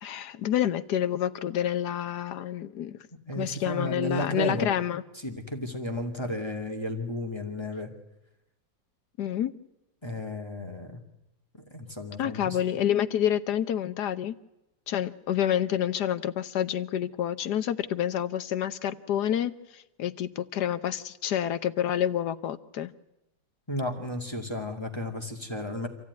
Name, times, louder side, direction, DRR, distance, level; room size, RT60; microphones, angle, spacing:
voice 1, 0.0-3.0 3.3-5.0 9.2-9.5 12.2-14.3 14.9-22.9, left 10 dB, 65° left, 11 dB, 1.5 m, -28 dB
voice 2, 3.3-4.7 5.1-7.9 10.0-11.0 11.7-12.6 23.7-25.9, left 1 dB, 15° left, 4 dB, 2.4 m, -33 dB
27.0 x 15.5 x 9.6 m, 0.92 s
omnidirectional pair, 2.0 m